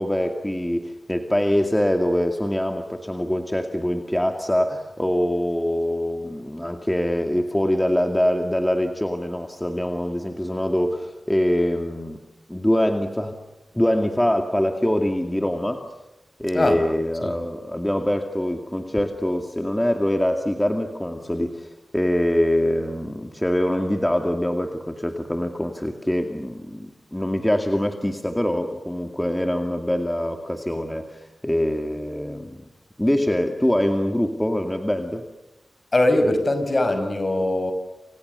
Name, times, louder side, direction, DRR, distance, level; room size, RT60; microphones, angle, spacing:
voice 1, 0.0-12.2 12.5-13.4 13.7-15.9 16.4-32.6 33.0-35.3, left 1 dB, 10° left, 5 dB, 2.3 m, -24 dB
voice 2, 35.9-37.7, left 1 dB, 40° left, 8 dB, 5.9 m, -21 dB
29.0 x 28.5 x 6.9 m, 0.98 s
wide cardioid pair, 65°, 0 cm